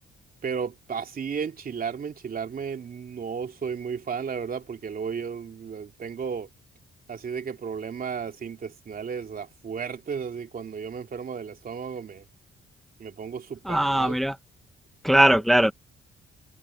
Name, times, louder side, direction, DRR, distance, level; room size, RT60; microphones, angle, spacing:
voice 1, 0.4-6.5 7.1-12.2 13.0-14.2, right 6 dB, 45° right, 2.9 m, -34 dB
voice 2, 13.6-14.4 15.0-15.7, right 1 dB, ahead, 0.9 m, -20 dB
cardioid pair, 90°, 20 cm